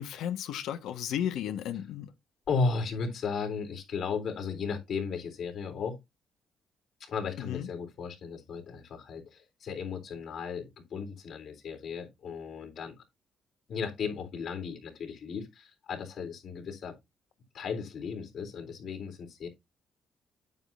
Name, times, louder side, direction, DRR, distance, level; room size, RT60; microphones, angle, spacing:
voice 1, 0.0-2.1 7.4-7.7, left 10 dB, 85° left, 1.4 m, -34 dB
voice 2, 2.5-6.0 7.0-12.9 13.7-16.9 17.5-19.5, left 5 dB, 65° left, 3.7 m, -35 dB
9.4 x 8.5 x 2.6 m
cardioid pair, 90°, 0 cm